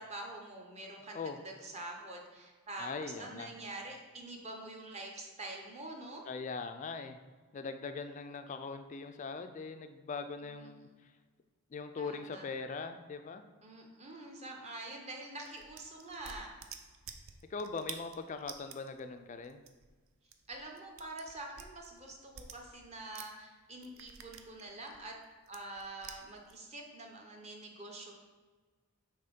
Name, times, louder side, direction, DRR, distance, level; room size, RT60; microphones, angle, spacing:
voice 1, 0.0-1.2 1.4-6.3 10.4-10.7 12.0-12.4 13.6-16.5 20.5-25.2 25.5-28.2, right 2 dB, 30° right, 0 dB, 0.7 m, -46 dB
voice 2, 2.8-3.5 6.3-7.2 7.5-11.1 11.7-13.4 17.5-19.6, left 4 dB, 35° left, 8 dB, 0.3 m, -41 dB
sound 1, 15.4-23.4 23.7-26.6, right 7 dB, 65° right, 0.5 m, -50 dB
5.5 x 3.5 x 5.2 m, 1.4 s
head